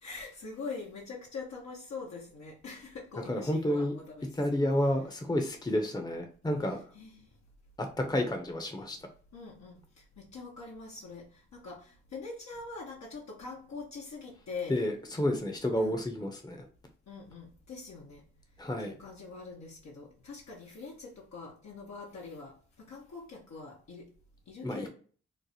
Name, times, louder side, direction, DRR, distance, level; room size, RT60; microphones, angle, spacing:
voice 1, 0.0-4.6 6.9-7.3 9.3-9.8 10.2-11.3 11.5-14.8 15.8-16.0 17.1-18.2 18.8-22.5 22.8-24.1 24.5-24.9, left 4 dB, 65° left, 0.9 m, -43 dB
voice 2, 3.3-3.9 4.4-6.8 7.8-9.0 14.7-16.6 18.6-18.9 24.6-24.9, left 1 dB, 15° left, 0.8 m, -30 dB
3.3 x 2.0 x 4.0 m
supercardioid pair, 40°, 30 cm